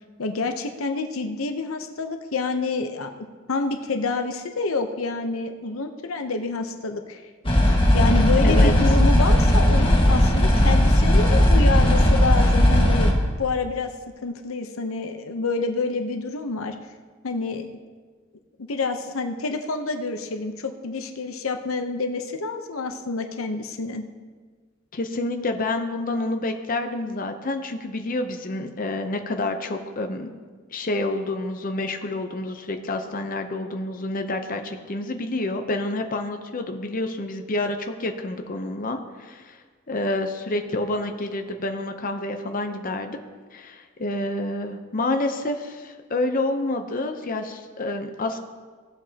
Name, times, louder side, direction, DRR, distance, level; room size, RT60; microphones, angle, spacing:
voice 1, 0.2-3.1 3.5-7.2 7.9-13.9 14.2-16.8 17.2-17.7 18.6-24.0, left 3 dB, 85° left, 6 dB, 0.8 m, -28 dB
sound 1, 7.5-13.1, left 1 dB, 25° left, 1.6 m, -17 dB
voice 2, 8.4-8.7 24.9-30.3 30.7-39.6 39.9-43.2 43.5-48.4, left 2 dB, 40° left, 5 dB, 0.7 m, -28 dB
17.5 x 8.0 x 2.9 m, 1.5 s
head